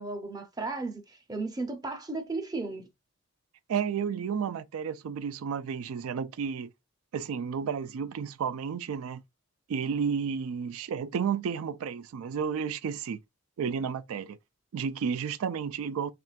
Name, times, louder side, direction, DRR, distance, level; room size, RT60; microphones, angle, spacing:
voice 1, 0.0-2.9, right 3 dB, 15° right, 0.6 m, -35 dB
voice 2, 3.7-6.7 7.1-9.2 9.7-13.2 13.6-14.4 14.7-16.1, right 6 dB, 80° right, 0.3 m, -32 dB
5.9 x 3.2 x 2.4 m
head